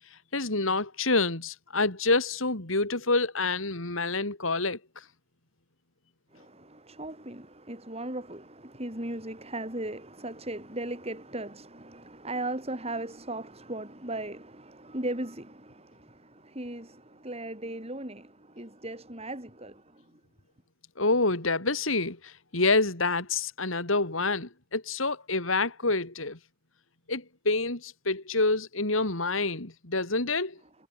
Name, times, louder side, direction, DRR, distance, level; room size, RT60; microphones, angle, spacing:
voice 1, 0.3-4.8 21.0-26.4 27.1-30.6, left 3 dB, 85° left, 4.3 m, -27 dB
voice 2, 6.3-20.0, right 1 dB, 30° right, 6.0 m, -37 dB
head